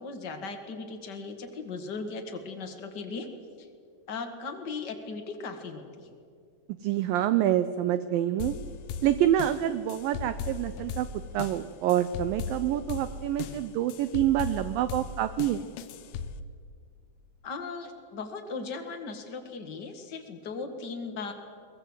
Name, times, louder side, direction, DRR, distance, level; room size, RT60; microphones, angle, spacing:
voice 1, 0.0-3.3 3.6-3.7 4.1-6.1 17.4-21.3, left 4 dB, 50° left, 5 dB, 1.3 m, -38 dB
voice 2, 6.8-8.6 9.0-11.1 11.3-15.6, right 12 dB, 85° right, 12 dB, 2.0 m, -27 dB
sound 1, 8.4-16.4, left 6 dB, 70° left, 2.2 m, -38 dB
22.5 x 20.0 x 8.0 m, 2.2 s
omnidirectional pair, 4.9 m